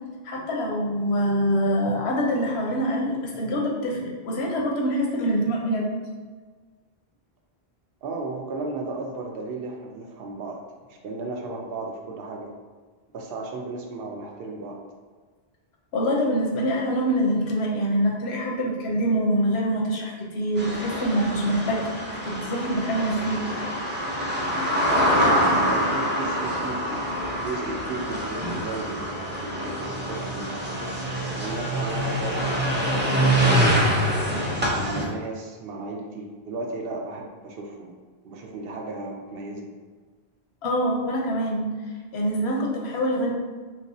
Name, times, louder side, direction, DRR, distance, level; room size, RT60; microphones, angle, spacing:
voice 1, 0.2-5.9 15.9-21.8 22.2-23.4 40.6-41.8 42.1-43.3, equal, 90° left, -1 dB, 1.0 m, -25 dB
voice 2, 8.0-10.6 10.9-12.5 13.1-14.8 25.6-27.0 27.4-30.7 31.4-34.2 34.7-37.9 38.2-39.7, right 3 dB, 70° right, 1 dB, 0.8 m, -35 dB
sound 1, 20.6-35.0, equal, 15° right, 0.4 m, -25 dB
3.4 x 2.9 x 2.6 m, 1.4 s
omnidirectional pair, 1.1 m